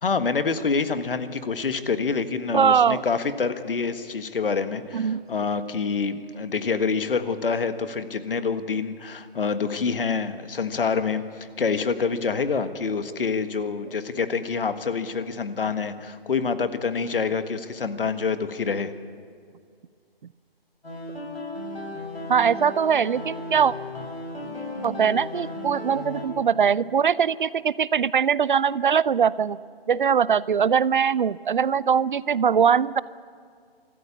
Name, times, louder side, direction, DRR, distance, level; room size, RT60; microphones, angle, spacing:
voice 1, 0.0-18.9, left 5 dB, 65° left, 10 dB, 1.6 m, -26 dB
voice 2, 2.5-3.0 4.9-5.2 22.3-23.7 24.8-29.6 29.9-33.0, right 7 dB, 55° right, 21 dB, 0.5 m, -21 dB
sound 1, 20.8-26.2, left 1 dB, 85° left, 7.0 m, -35 dB
25.0 x 14.0 x 8.5 m, 2.2 s
figure-of-eight pair, 140°, 30 cm